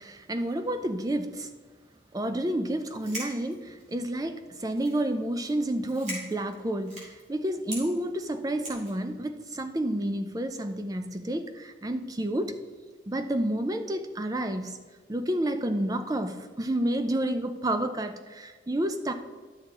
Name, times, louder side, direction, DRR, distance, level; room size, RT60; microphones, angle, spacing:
voice 1, 0.0-1.5 2.1-12.5 13.1-14.8 15.1-19.1, right 1 dB, 20° right, 8 dB, 0.5 m, -30 dB
sound 1, 2.9-4.1 4.7-5.1 5.4-5.6 5.8-7.2 7.7-7.8 8.6-9.0, right 1 dB, 40° right, 2.8 m, -39 dB
11.0 x 6.4 x 3.7 m, 1.5 s
head